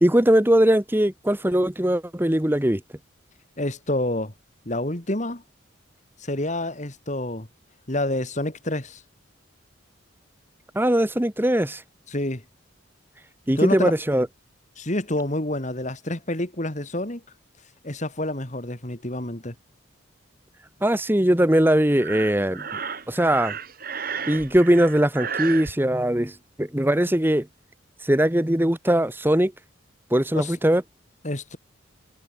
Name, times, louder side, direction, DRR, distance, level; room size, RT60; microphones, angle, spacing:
voice 1, 0.0-2.8 10.7-11.8 13.5-14.3 20.8-22.7 23.1-23.5 24.3-27.5 28.0-29.5 30.1-30.8, right 1 dB, 10° right, 1.1 m, -20 dB
voice 2, 3.6-4.3 4.7-5.4 6.2-7.5 7.9-9.0 12.1-12.4 13.6-14.2 14.8-17.2 17.8-19.5 30.3-30.6 31.2-31.6, left 1 dB, 35° left, 2.8 m, -28 dB
Breathing, 22.0-25.7, right 6 dB, 45° right, 4.9 m, -33 dB
head